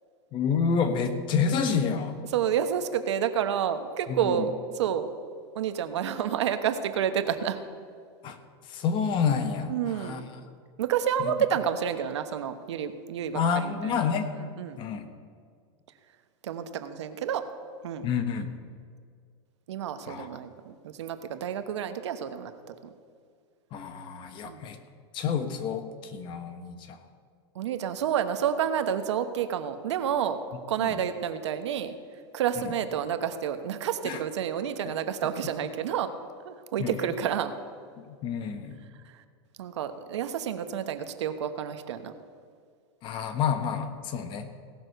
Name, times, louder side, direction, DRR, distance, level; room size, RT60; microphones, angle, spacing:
voice 1, 0.3-2.2 4.1-4.4 8.2-8.4 8.7-10.2 11.2-11.3 13.3-14.3 14.8-15.1 18.0-18.5 20.1-20.3 23.7-24.8 25.1-27.0 30.9-31.0 34.0-34.2 34.8-34.9 36.8-36.9 38.1-38.8 43.0-44.5, left 6 dB, 35° left, 8 dB, 1.2 m, -29 dB
voice 2, 2.3-5.1 5.5-7.6 9.7-10.2 10.8-14.0 14.4-14.8 16.4-17.5 17.8-18.1 19.7-22.9 24.4-24.7 27.5-30.4 30.7-31.9 32.3-36.1 36.4-37.5 39.0-39.2 39.6-42.1, right 9 dB, 85° right, 9 dB, 1.1 m, -29 dB
17.0 x 6.2 x 6.7 m, 2.1 s
supercardioid pair, 140°, 14 cm